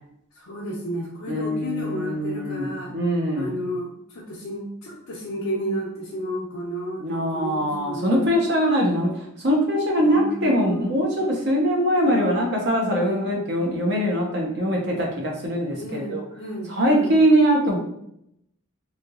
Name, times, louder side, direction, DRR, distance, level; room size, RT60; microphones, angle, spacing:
voice 1, 0.4-2.9 3.3-8.3 10.0-11.0 12.9-13.2 15.8-17.2, equal, 85° left, -5 dB, 0.7 m, -32 dB
voice 2, 1.3-3.5 7.0-16.2 16.7-17.8, equal, 50° right, -1 dB, 0.8 m, -22 dB
3.4 x 2.8 x 2.4 m, 0.75 s
head